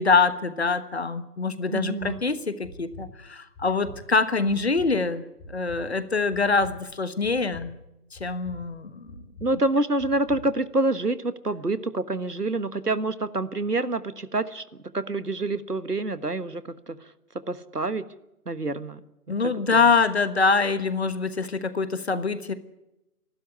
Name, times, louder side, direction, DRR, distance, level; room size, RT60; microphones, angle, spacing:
voice 1, 0.0-7.8 8.1-9.1 19.3-22.5, left 4 dB, 45° left, 13 dB, 1.4 m, -24 dB
voice 2, 1.7-2.2 9.4-14.6 14.9-17.0 17.5-18.0 18.5-19.0 19.3-19.4 19.7-19.8, right 2 dB, 85° right, 14 dB, 1.5 m, -27 dB
sound 1, 2.0-2.1 2.6-3.0 3.5-3.9 4.5-4.9 5.4-5.8 6.3-6.7 7.2-7.6 8.1-8.6 9.1-9.5 10.0-10.4, left 1 dB, 10° left, 5.9 m, -43 dB
26.5 x 12.5 x 9.6 m, 0.93 s
figure-of-eight pair, 155°, 46 cm